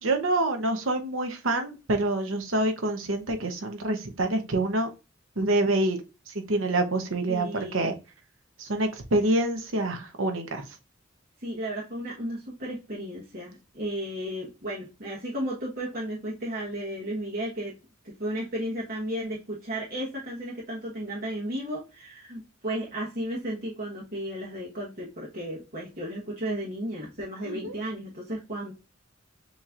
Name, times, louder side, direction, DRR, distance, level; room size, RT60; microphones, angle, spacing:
voice 1, 0.0-4.9 5.4-6.0 6.3-7.9 8.6-10.6 27.4-27.7, right 2 dB, 90° right, 5 dB, 0.9 m, -26 dB
voice 2, 7.3-7.9 11.4-17.7 18.2-28.7, right 1 dB, 50° right, -5 dB, 1.2 m, -34 dB
7.0 x 3.0 x 2.5 m, 0.29 s
head